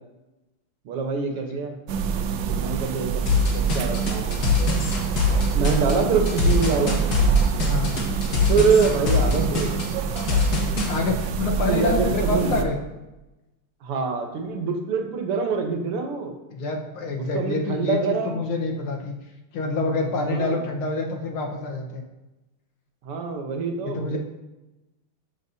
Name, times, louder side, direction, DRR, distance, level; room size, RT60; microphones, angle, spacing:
voice 1, 0.9-1.7 2.5-4.4 5.5-7.0 8.5-9.7 11.7-12.7 13.8-16.3 17.3-18.4 20.3-20.6 23.0-24.2, right 5 dB, 85° right, 4 dB, 2.0 m, -25 dB
sound 1, 1.9-12.6, right 6 dB, 70° right, 1.1 m, -26 dB
sound 2, 3.3-10.9, left 4 dB, 50° left, 2.0 m, -23 dB
voice 2, 7.6-8.0 10.9-12.8 16.5-19.2 19.5-22.0 23.8-24.2, left 3 dB, 75° left, 1 dB, 2.0 m, -27 dB
13.5 x 7.0 x 2.7 m, 1.0 s
omnidirectional pair, 2.4 m